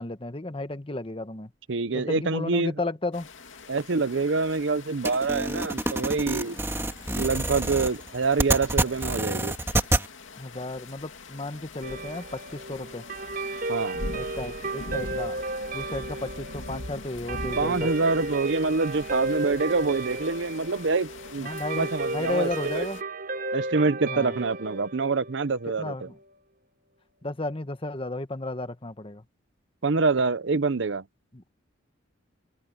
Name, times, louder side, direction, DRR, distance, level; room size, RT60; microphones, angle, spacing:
voice 1, 0.0-1.5 1.9-3.3 6.8-6.9 9.0-9.1 10.4-13.0 14.1-15.4 15.7-17.9 21.4-23.0 24.1-24.4 25.8-26.1 27.2-29.2 31.3-31.4, left 2 dB, 25° left, 1.2 m, -33 dB
voice 2, 1.7-2.7 3.7-6.6 7.1-9.5 13.7-14.0 17.6-22.9 23.5-26.1 29.8-31.0, right 4 dB, 65° right, 0.7 m, -26 dB
sound 1, 3.1-23.0, left 3 dB, 80° left, 2.5 m, -43 dB
sound 2, 5.0-10.1, right 1 dB, 15° right, 2.2 m, -27 dB
Guitar, 11.8-26.4, right 2 dB, 50° right, 5.4 m, -34 dB
open air
head